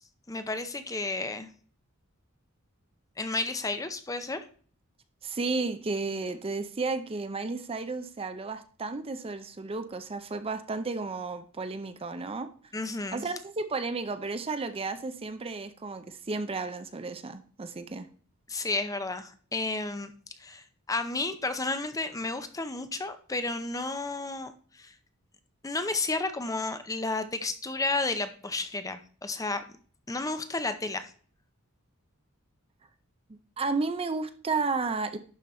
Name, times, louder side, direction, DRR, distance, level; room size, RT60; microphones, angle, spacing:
voice 1, 0.3-1.5 3.2-4.4 12.7-13.2 18.5-20.1 20.4-24.5 24.8-24.9 25.6-29.6 30.1-31.1, left 3 dB, 15° left, 9 dB, 0.6 m, -32 dB
voice 2, 5.2-12.5 13.1-18.1 33.6-35.2, right 3 dB, 25° right, 9 dB, 0.5 m, -33 dB
11.5 x 3.9 x 4.3 m, 0.44 s
head